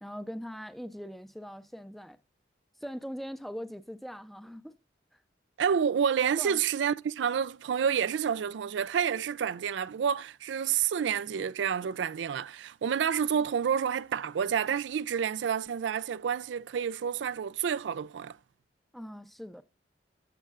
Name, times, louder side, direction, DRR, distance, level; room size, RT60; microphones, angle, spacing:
voice 1, 0.0-2.2 2.8-4.8 6.4-6.6 18.9-19.6, equal, ahead, 0.5 m, -41 dB
voice 2, 5.6-18.4, right 7 dB, 90° right, 0.4 m, -29 dB
14.5 x 6.6 x 2.4 m
head